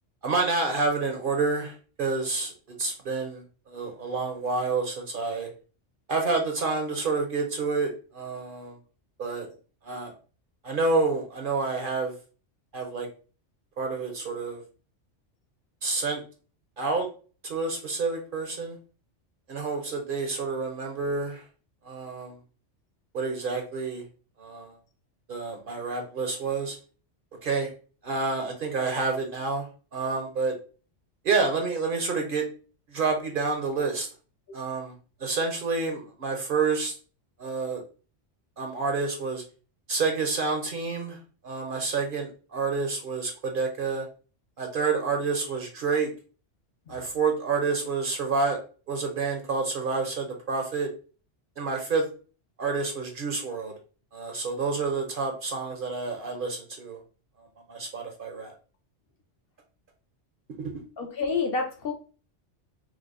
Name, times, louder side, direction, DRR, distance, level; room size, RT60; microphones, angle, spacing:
voice 1, 0.2-5.5 6.1-8.8 9.2-9.5 9.8-10.1 10.6-12.1 12.7-13.1 13.8-14.6 15.8-16.2 16.8-17.1 17.4-18.8 19.5-21.4 21.8-22.4 23.1-24.0 24.4-24.8 25.3-26.8 27.4-27.7 28.0-29.7 29.9-30.5 31.2-32.5 32.9-34.1 34.5-34.9 35.2-36.9 37.4-37.8 38.6-39.4 39.9-41.2 41.4-44.1 44.6-46.1 46.9-48.6 48.9-50.9 51.6-52.1 52.6-53.7 54.1-57.0 57.4-58.5 60.6-60.7, right 4 dB, 55° right, 3 dB, 0.7 m, -28 dB
voice 2, 61.0-61.9, left 4 dB, 60° left, 4 dB, 0.8 m, -28 dB
4.6 x 2.1 x 2.4 m, 0.37 s
omnidirectional pair, 1.2 m